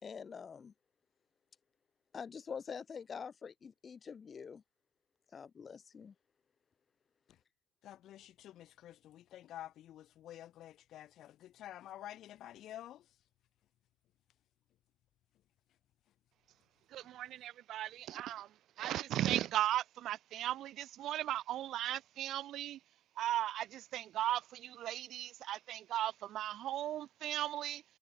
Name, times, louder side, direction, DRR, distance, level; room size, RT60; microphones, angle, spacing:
voice 1, 0.0-0.7 2.1-4.6 5.3-6.1, left 6 dB, 30° left, 2.6 m, -46 dB
voice 2, 7.8-13.1, left 12 dB, 50° left, 1.9 m, -50 dB
voice 3, 16.9-18.5 18.8-22.8 23.2-27.8, right 12 dB, 50° right, 0.5 m, -37 dB
figure-of-eight pair, 60°, 0 cm